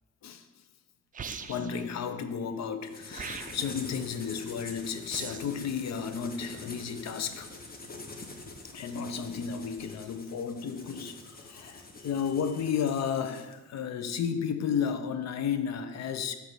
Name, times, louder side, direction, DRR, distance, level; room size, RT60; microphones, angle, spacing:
sound 1, 1.1-1.8 3.1-3.8 5.1-5.6, right 6 dB, 30° right, 0.4 m, -40 dB
voice 1, 1.4-7.5 8.7-16.3, left 7 dB, 60° left, 0.6 m, -33 dB
sound 2, 2.8-13.5, left 2 dB, 30° left, 1.0 m, -46 dB
8.0 x 3.3 x 6.0 m
cardioid pair, 90°, 30 cm